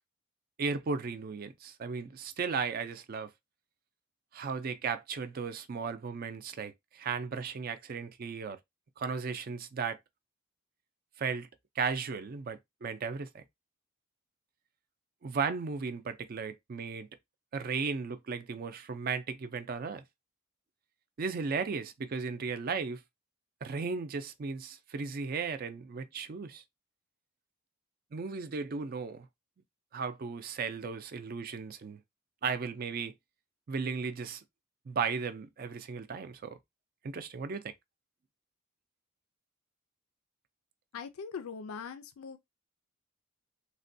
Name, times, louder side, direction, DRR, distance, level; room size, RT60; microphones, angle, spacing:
voice 1, 0.6-3.3 4.3-8.6 9.0-10.0 11.2-11.5 11.8-13.4 15.2-17.1 17.5-20.0 21.2-23.0 23.6-26.6 28.1-29.3 29.9-32.0 32.4-33.1 33.7-34.4 34.9-36.6 37.0-37.7, right 5 dB, 45° right, 0.4 m, -35 dB
voice 2, 40.9-42.4, left 6 dB, 85° left, 0.4 m, -41 dB
3.4 x 2.1 x 2.6 m
head